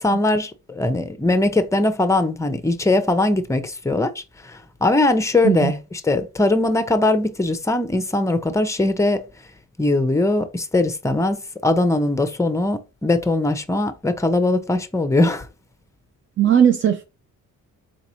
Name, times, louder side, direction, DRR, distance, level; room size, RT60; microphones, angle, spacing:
voice 1, 0.0-9.2 9.8-15.5, left 2 dB, 10° left, 0.6 m, -20 dB
voice 2, 16.4-17.0, right 9 dB, 40° right, 0.5 m, -17 dB
3.9 x 3.4 x 2.9 m
cardioid pair, 95°, 32 cm